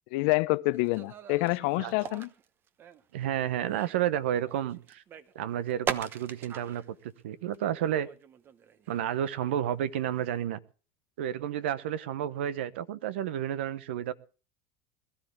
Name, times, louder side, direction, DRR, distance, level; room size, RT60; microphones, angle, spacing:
voice 1, 0.1-2.3, left 22 dB, 70° left, 0.6 m, -27 dB
sound 1, 0.7-3.0 3.4-6.9 7.2-7.3 7.5-7.6 7.9-9.1 10.1-10.3, right 7 dB, 40° right, 1.0 m, -41 dB
voice 2, 3.1-5.0 5.3-8.1 8.9-10.6 11.2-14.1, right 11 dB, 85° right, 0.9 m, -31 dB
21.5 x 13.0 x 3.4 m
supercardioid pair, 105°, 6 cm